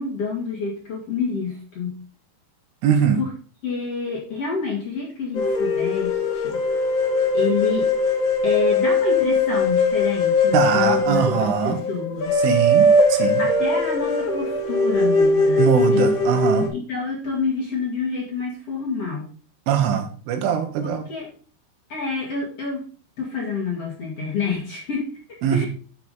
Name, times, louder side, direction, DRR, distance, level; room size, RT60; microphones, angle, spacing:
voice 1, 0.0-2.0 3.2-3.3 3.6-6.6 7.3-7.9 8.4-12.4 13.4-15.7 15.9-16.1 16.7-19.3 20.8-21.3 21.9-22.8 23.2-25.7, left 4 dB, 45° left, -2 dB, 2.4 m, -28 dB
voice 2, 2.8-3.2 10.5-11.8 12.4-13.4 15.6-16.7 19.7-21.0 25.4-25.7, right 8 dB, 90° right, 6 dB, 3.9 m, -21 dB
sound 1, 5.3-16.7, left 2 dB, 70° left, 1.1 m, -20 dB
11.5 x 6.1 x 3.9 m, 0.40 s
omnidirectional pair, 5.5 m